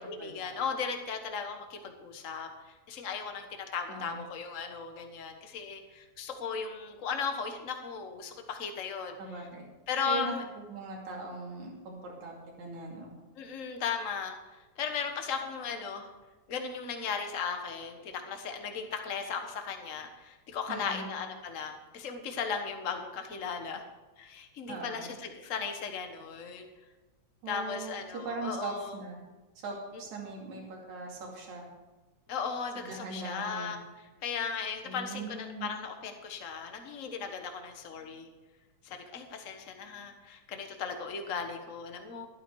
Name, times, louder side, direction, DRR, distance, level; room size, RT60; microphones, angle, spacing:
voice 1, 0.1-2.5 2.9-9.2 9.9-10.4 13.4-16.1 16.5-23.8 24.2-26.7 27.5-29.0 32.3-38.3 38.8-42.3, left 6 dB, 55° left, 5 dB, 0.8 m, -36 dB
voice 2, 3.9-4.2 9.2-9.6 10.1-10.3 10.7-13.1 20.7-21.1 24.7-25.1 27.4-29.2 29.6-31.7 32.8-33.8 34.9-35.7, right 3 dB, 75° right, -1 dB, 3.8 m, -40 dB
12.0 x 11.5 x 4.7 m, 1.2 s
omnidirectional pair, 3.3 m